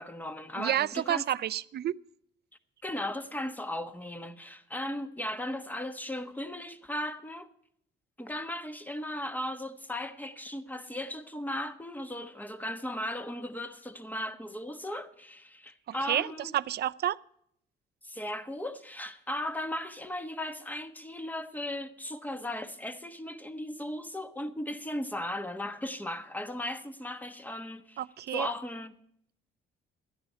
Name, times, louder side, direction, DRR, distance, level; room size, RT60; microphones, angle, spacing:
voice 1, 0.0-1.2 2.8-7.5 8.2-16.5 18.0-28.0 28.3-28.9, left 1 dB, 10° left, 1.2 m, -37 dB
voice 2, 0.6-2.0 16.1-17.2 28.0-28.5, right 11 dB, 55° right, 0.5 m, -30 dB
13.5 x 10.5 x 5.6 m
cardioid pair, 90°, 20 cm